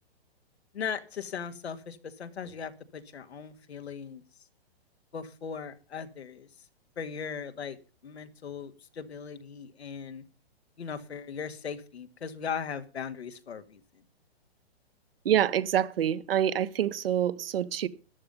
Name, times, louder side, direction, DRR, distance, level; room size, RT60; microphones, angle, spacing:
voice 1, 0.7-4.2 5.1-6.5 7.0-7.8 8.0-10.2 10.8-13.8, left 6 dB, 85° left, 2.1 m, -38 dB
voice 2, 15.2-17.9, right 10 dB, 65° right, 1.3 m, -26 dB
13.5 x 10.5 x 5.4 m
hypercardioid pair, 150°, 32 cm